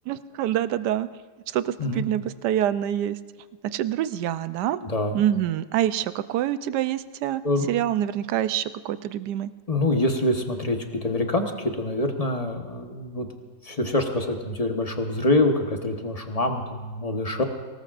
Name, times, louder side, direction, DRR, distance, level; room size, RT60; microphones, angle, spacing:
voice 1, 0.1-1.1 1.5-3.2 3.7-4.8 5.1-7.4 7.7-9.5, right 11 dB, 70° right, 13 dB, 1.1 m, -26 dB
voice 2, 4.8-5.2 7.4-7.7 9.7-13.3 13.6-17.4, left 1 dB, 25° left, 3 dB, 1.0 m, -25 dB
24.5 x 18.5 x 2.5 m, 1.4 s
omnidirectional pair, 2.0 m